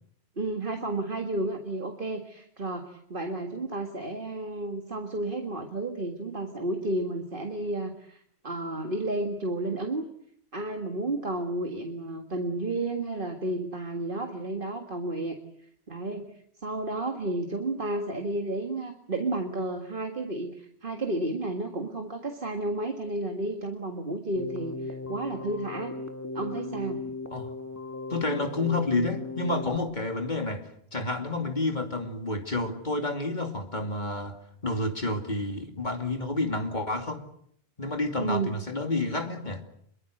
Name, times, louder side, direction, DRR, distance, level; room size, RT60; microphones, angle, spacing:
voice 1, 0.4-10.0 10.5-15.4 15.9-16.3 16.6-25.9 26.3-27.0 38.2-38.5, right 2 dB, 50° right, 2.1 m, -32 dB
Keyboard (musical), 24.4-29.8, left 3 dB, 15° left, 1.8 m, -37 dB
voice 2, 28.1-34.4 34.6-37.2 37.8-39.6, left 2 dB, 40° left, 2.8 m, -29 dB
26.5 x 23.0 x 7.9 m
omnidirectional pair, 1.1 m